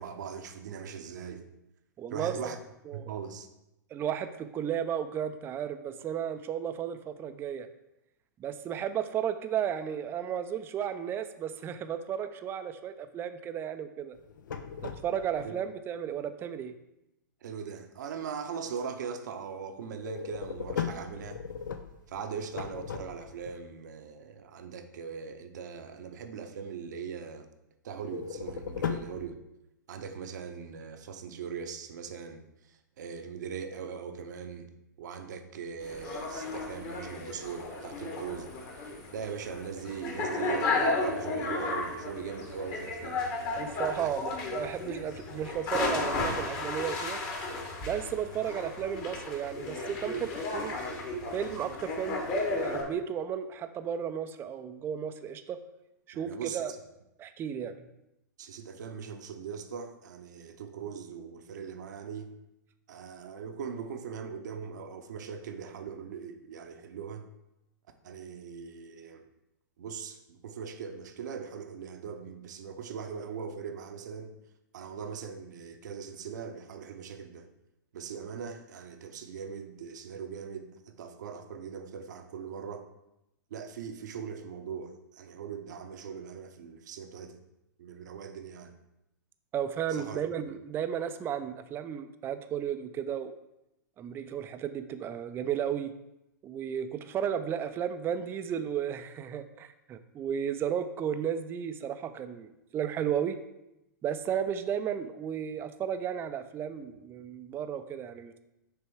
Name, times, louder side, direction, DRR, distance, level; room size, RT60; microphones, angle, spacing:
voice 1, 0.0-1.4 2.1-2.6 2.9-3.5 15.4-15.5 17.4-21.4 22.1-27.5 27.8-29.4 29.9-34.7 35.0-38.5 39.1-43.3 43.9-44.1 56.1-56.8 58.4-62.3 62.9-67.3 68.0-69.2 69.8-74.4 74.7-77.5 77.9-82.9 83.5-87.4 87.8-88.8 89.9-90.2, right 6 dB, 65° right, 7 dB, 0.7 m, -40 dB
voice 2, 2.0-2.3 2.9-3.1 3.9-7.7 8.4-14.2 14.8-16.7 43.6-47.2 47.8-50.7 51.3-55.6 56.1-56.7 57.2-57.7 89.5-93.3 94.0-95.9 96.4-103.4 104.0-108.4, right 9 dB, 20° right, 10 dB, 0.4 m, -34 dB
sound 1, 14.2-15.5 20.0-23.5 28.1-29.3, left 7 dB, 75° left, 0.5 m, -37 dB
sound 2, 35.8-52.8, left 2 dB, 40° left, 1.5 m, -34 dB
6.5 x 3.4 x 4.6 m, 0.89 s
hypercardioid pair, 115°, 10 cm